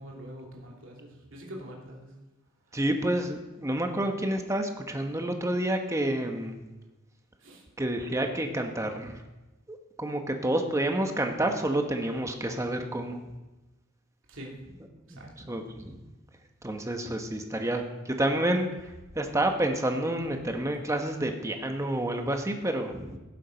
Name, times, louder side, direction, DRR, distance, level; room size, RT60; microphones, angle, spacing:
voice 1, 0.0-2.1 7.4-7.6 14.3-14.5 15.1-15.6, equal, 70° right, -2 dB, 2.8 m, -44 dB
voice 2, 2.7-6.7 7.8-9.2 9.7-13.2 15.1-16.0 16.6-18.9 19.1-23.2, right 1 dB, 15° right, 4 dB, 1.2 m, -29 dB
16.5 x 7.5 x 5.2 m, 1.1 s
head